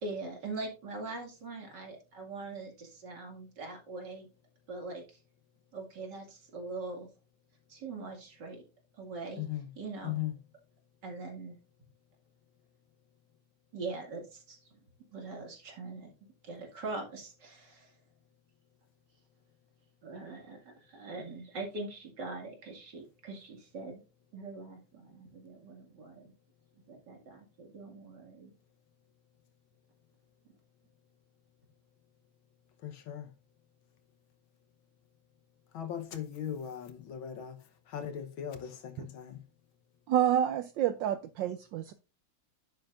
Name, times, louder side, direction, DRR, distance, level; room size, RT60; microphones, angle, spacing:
voice 1, 0.0-4.3 4.7-5.2 5.7-7.1 7.7-8.6 9.0-9.4 9.8-10.2 11.0-11.6 13.7-14.6 15.1-16.1 16.4-17.9 20.0-24.0 24.3-26.3 26.9-28.5, right 3 dB, 55° right, 2.7 m, -42 dB
voice 2, 9.4-9.7 10.0-10.4 32.8-33.4 35.7-39.4, left 10 dB, 75° left, 1.7 m, -39 dB
voice 3, 40.1-41.9, right 10 dB, 75° right, 1.1 m, -28 dB
10.0 x 7.8 x 2.5 m
omnidirectional pair, 2.3 m